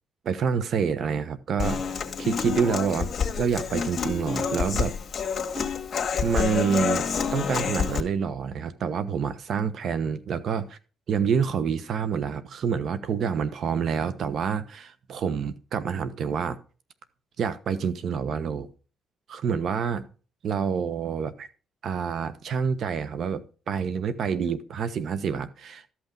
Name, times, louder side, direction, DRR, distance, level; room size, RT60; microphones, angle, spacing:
voice 1, 0.2-3.1 3.4-4.9 6.2-7.1 7.3-10.7 11.1-16.6 17.4-18.7 19.3-20.0 20.4-21.5 21.8-25.9, right 6 dB, 60° right, 1.1 m, -27 dB
Human voice / Acoustic guitar, 1.6-8.0, left 6 dB, 50° left, 1.7 m, -28 dB
13.0 x 6.0 x 5.2 m
cardioid pair, 80°, 0 cm